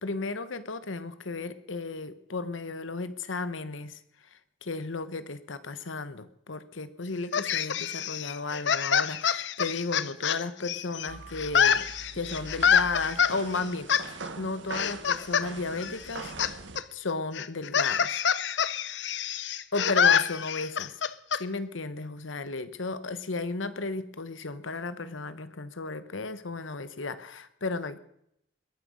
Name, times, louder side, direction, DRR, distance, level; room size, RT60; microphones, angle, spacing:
voice 1, 0.0-11.9 12.1-16.3 16.9-18.7 19.7-21.0 21.3-28.0, left 3 dB, 90° left, 13 dB, 1.1 m, -34 dB
sound 1, 7.3-11.1 11.4-13.3 13.9-14.0 14.7-15.5 15.7-16.5 16.8-16.9 17.3-21.4, left 7 dB, 65° left, 0.7 m, -26 dB
sound 2, 11.1-16.8, right 3 dB, 75° right, 1.4 m, -42 dB
21.0 x 9.3 x 6.4 m, 0.76 s
head